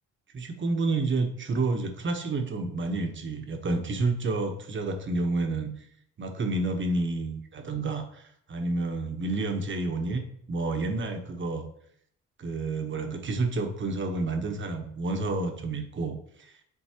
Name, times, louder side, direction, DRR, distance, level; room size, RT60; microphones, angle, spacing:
voice 1, 0.3-5.7 6.2-10.2 10.5-11.6 12.4-16.6, right 3 dB, 40° right, 4 dB, 1.1 m, -29 dB
8.3 x 4.0 x 2.9 m, 0.66 s
cardioid pair, 90°, 30 cm